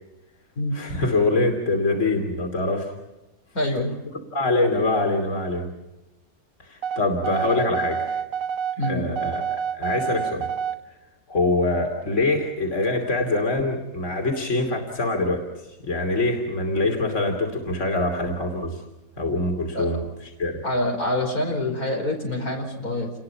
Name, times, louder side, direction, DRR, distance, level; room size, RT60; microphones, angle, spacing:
voice 1, 0.7-2.9 4.3-5.7 6.6-8.2 8.8-10.5 11.3-15.4 15.8-18.8 19.2-20.6, left 2 dB, 55° left, 3 dB, 3.3 m, -24 dB
voice 2, 3.5-4.0 8.8-9.0 19.7-19.9 20.6-23.1, left 1 dB, 90° left, 2 dB, 5.7 m, -26 dB
sound 1, 6.8-10.8, right 8 dB, 65° right, 1.3 m, -28 dB
29.5 x 20.5 x 5.8 m, 0.98 s
omnidirectional pair, 1.5 m